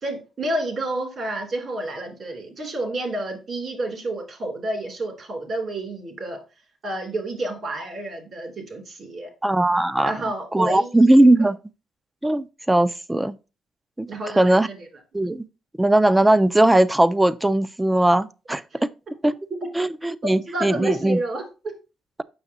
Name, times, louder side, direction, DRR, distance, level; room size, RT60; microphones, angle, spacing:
voice 1, 0.0-6.4 6.8-9.3 10.0-11.5 14.1-14.9 18.7-18.8 20.3-21.4, right 1 dB, 50° right, 2.6 m, -30 dB
voice 2, 9.4-10.1 10.5-11.6 12.2-13.4 14.0-14.1 14.4-14.7 15.1-15.4 15.8-18.9 19.2-19.3 19.7-21.2, right 1 dB, 10° right, 0.4 m, -19 dB
7.0 x 5.8 x 2.7 m
cardioid pair, 90°, 0 cm